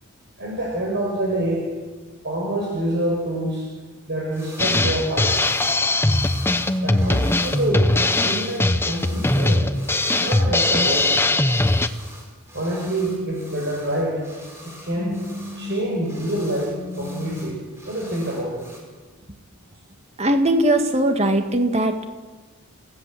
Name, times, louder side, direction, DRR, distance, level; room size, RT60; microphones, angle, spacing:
voice 1, 0.4-1.7 2.2-3.6 4.1-5.4 6.8-7.9 8.2-9.7 10.2-11.3 12.5-14.2 14.6-18.6, right 1 dB, 50° right, -2 dB, 6.1 m, -26 dB
sound 1, 4.3-4.9 5.1-18.8, equal, 10° right, 5.8 m, -44 dB
Drum kit, 4.6-11.9, left 2 dB, 10° left, 0.8 m, -20 dB
voice 2, 20.2-22.1, right 1 dB, 30° right, 6 dB, 2.0 m, -19 dB
29.5 x 17.5 x 7.8 m, 1.3 s
head